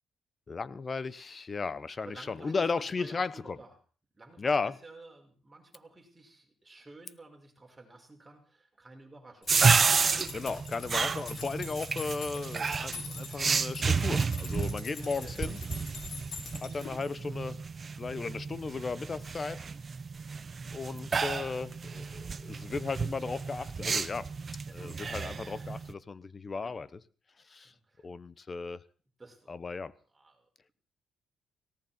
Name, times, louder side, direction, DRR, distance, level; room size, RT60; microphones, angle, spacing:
voice 1, 0.5-3.6 4.4-4.8 10.3-15.6 16.6-17.6 18.0-19.7 20.7-24.3 24.7-27.0 27.5-27.7 28.0-28.8 29.5-29.9, left 4 dB, 35° left, 0.9 m, -35 dB
voice 2, 2.0-3.7 4.1-9.6 15.0-16.5 20.9-21.1 24.7-24.8 26.6-26.8 27.6-28.1 29.2-29.6 30.1-30.7, right 2 dB, 20° right, 5.4 m, -53 dB
sound 1, 9.4-17.2, left 5 dB, 70° left, 5.5 m, -45 dB
sound 2, 9.5-25.9, right 5 dB, 40° right, 0.8 m, -31 dB
18.5 x 17.5 x 4.4 m
cardioid pair, 90°, 0 cm